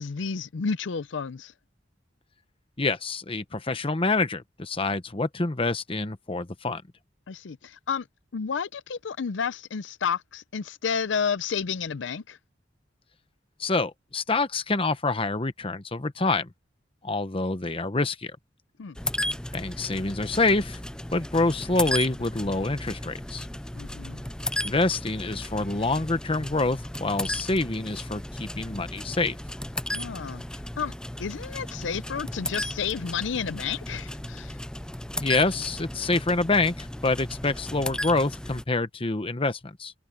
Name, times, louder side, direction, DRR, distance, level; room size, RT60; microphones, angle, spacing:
voice 1, 0.0-1.5 7.3-8.1 8.3-12.4 18.8-19.0 23.7-24.2 29.9-30.9 31.2-34.6, left 6 dB, 85° left, 0.5 m, -31 dB
voice 2, 2.8-6.8 13.6-16.5 17.0-18.3 19.5-20.8 21.1-23.5 24.6-29.4 35.2-39.9, left 3 dB, 30° left, 1.1 m, -26 dB
sound 1, 19.0-38.6, left 1 dB, 5° left, 0.4 m, -35 dB
head